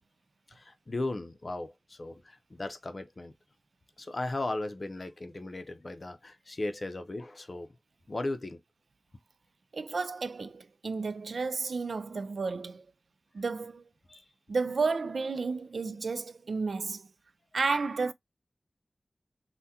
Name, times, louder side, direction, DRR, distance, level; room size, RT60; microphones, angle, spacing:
voice 1, 0.5-3.3 4.0-7.7 8.1-8.6 14.1-14.2, left 2 dB, 50° left, 0.5 m, -36 dB
voice 2, 9.7-12.8 13.3-13.8 14.5-17.1 17.5-18.1, right 4 dB, 85° right, 0.3 m, -32 dB
3.5 x 2.2 x 2.7 m
wide cardioid pair, 65°, 0 cm